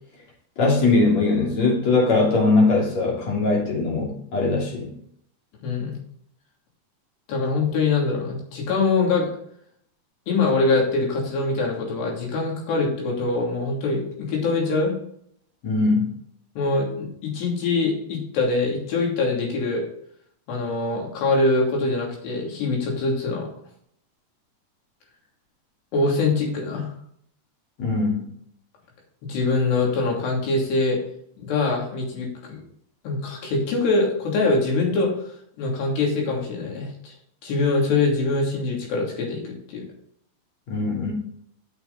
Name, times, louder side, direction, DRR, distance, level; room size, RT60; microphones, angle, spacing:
voice 1, 0.6-4.9 15.6-16.1 27.8-28.3 40.7-41.1, left 3 dB, 45° left, -2 dB, 3.8 m, -21 dB
voice 2, 5.6-5.9 7.3-9.3 10.3-15.0 16.6-19.9 20.5-23.5 25.9-26.9 29.2-31.0 31.4-32.6 33.0-35.1 35.6-37.1 37.4-39.9, left 3 dB, 80° left, -1 dB, 5.0 m, -23 dB
11.0 x 6.9 x 4.1 m, 0.67 s
omnidirectional pair, 4.7 m